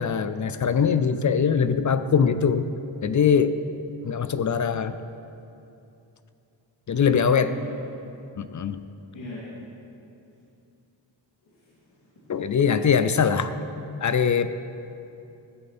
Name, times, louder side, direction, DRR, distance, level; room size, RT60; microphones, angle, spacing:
voice 1, 0.0-2.7 3.0-3.6 4.0-5.0 6.9-7.5 8.4-8.8 12.3-13.5 14.0-14.5, left 6 dB, 40° left, 12 dB, 0.5 m, -22 dB
voice 2, 6.9-7.7 9.1-9.5 11.4-11.7 12.0-12.1 13.3-14.0, left 1 dB, 75° left, -8 dB, 3.1 m, -38 dB
15.5 x 12.0 x 4.3 m, 2.7 s
wide cardioid pair, 155°, 46 cm